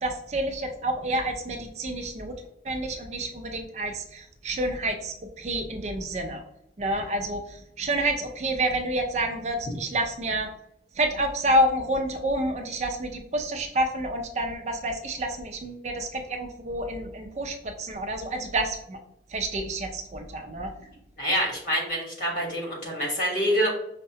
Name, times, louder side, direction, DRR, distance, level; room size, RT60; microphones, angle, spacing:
voice 1, 0.0-2.3 2.6-6.4 6.8-10.5 11.0-19.0 19.3-20.7, right 1 dB, 40° right, 5 dB, 0.4 m, -28 dB
voice 2, 21.2-23.7, equal, 50° left, -2 dB, 1.3 m, -26 dB
5.4 x 2.1 x 2.8 m, 0.77 s
head